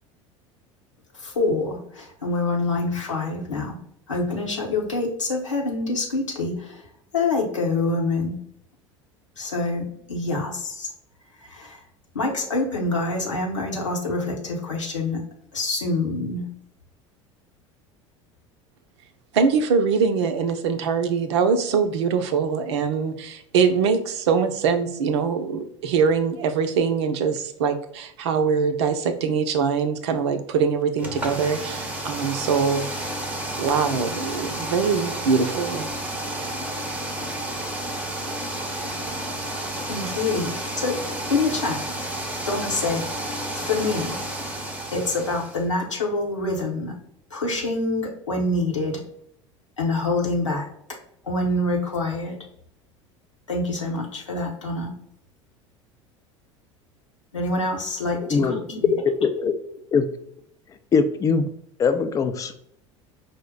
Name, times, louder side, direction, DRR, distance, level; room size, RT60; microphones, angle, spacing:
voice 1, 1.1-3.8 4.1-6.8 7.1-8.4 9.4-10.9 11.4-11.8 12.1-15.2 15.5-16.5 39.9-41.0 41.3-41.8 42.5-43.1 43.5-44.2 44.9-47.0 47.3-49.0 49.8-50.7 51.2-52.4 53.5-54.9 57.3-58.9, left 2 dB, 80° left, 0 dB, 0.9 m, -26 dB
voice 2, 19.3-33.1 33.6-35.9, right 5 dB, 60° right, 8 dB, 0.5 m, -23 dB
sound 1, 31.0-45.6, right 1 dB, 10° right, 0.7 m, -31 dB
voice 3, 58.9-59.5 59.9-60.1 60.9-61.5 61.8-62.5, left 5 dB, 20° left, 8 dB, 0.4 m, -21 dB
5.1 x 2.1 x 3.7 m, 0.72 s
figure-of-eight pair, 70°, 16 cm